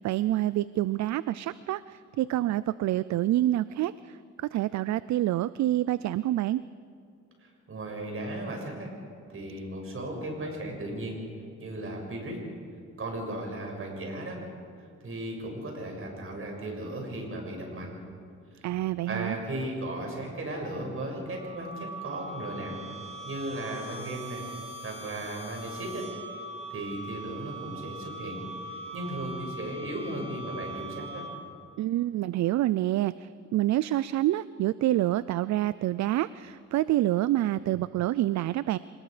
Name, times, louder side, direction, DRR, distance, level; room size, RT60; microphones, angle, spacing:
voice 1, 0.0-6.6 18.6-19.4 31.8-38.8, right 14 dB, 65° right, 17 dB, 0.5 m, -27 dB
voice 2, 7.7-8.9 9.3-11.2 11.6-12.4 13.0-14.4 15.0-17.9 18.5-18.7 19.1-22.8 23.2-24.4 24.8-26.1 26.7-31.2, right 1 dB, 45° right, 1 dB, 6.6 m, -36 dB
sound 1, 21.3-31.7, right 2 dB, 20° right, 2.9 m, -41 dB
26.5 x 20.0 x 5.0 m, 2.4 s
cardioid pair, 90°, 30 cm